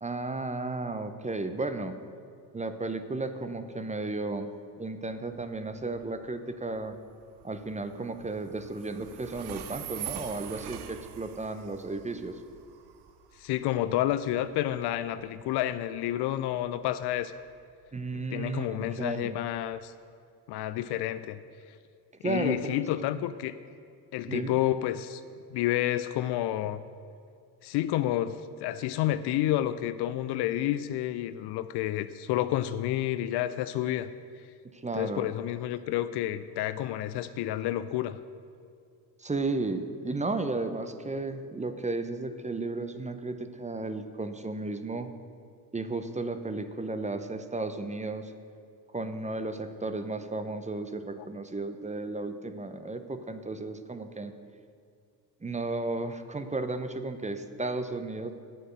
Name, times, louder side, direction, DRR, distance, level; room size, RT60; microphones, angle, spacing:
voice 1, 0.0-1.9 2.5-4.5 4.8-6.9 7.4-12.4 17.9-19.4 22.2-22.8 23.1-23.2 24.3-24.6 34.7-35.3 39.2-45.1 45.7-48.3 48.9-54.3 55.4-58.3, right 3 dB, 15° right, 8 dB, 0.8 m, -34 dB
Train, 5.1-19.8, right 11 dB, 50° right, 0.8 m, -46 dB
voice 2, 13.4-17.3 18.1-19.9 20.5-21.4 22.2-23.6 24.1-25.2 25.5-26.8 27.6-34.1 34.9-38.2, left 13 dB, 55° left, 13 dB, 0.5 m, -30 dB
9.6 x 6.4 x 7.7 m, 2.4 s
hypercardioid pair, 50°, 49 cm